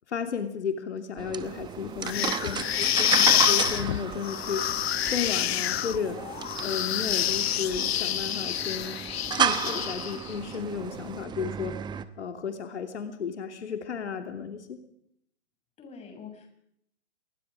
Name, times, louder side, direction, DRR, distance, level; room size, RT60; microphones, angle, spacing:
voice 1, 0.1-4.6 5.1-6.2 6.6-9.0 9.3-11.8 12.2-14.8, left 6 dB, 80° left, 6 dB, 2.9 m, -33 dB
sound 1, 1.2-12.0, right 8 dB, 15° right, 0.9 m, -33 dB
sound 2, 2.0-10.3, left 12 dB, 65° left, 0.9 m, -27 dB
voice 2, 15.8-16.5, left 6 dB, 20° left, 3 dB, 7.1 m, -45 dB
27.0 x 23.0 x 5.0 m, 0.72 s
hypercardioid pair, 135°, 34 cm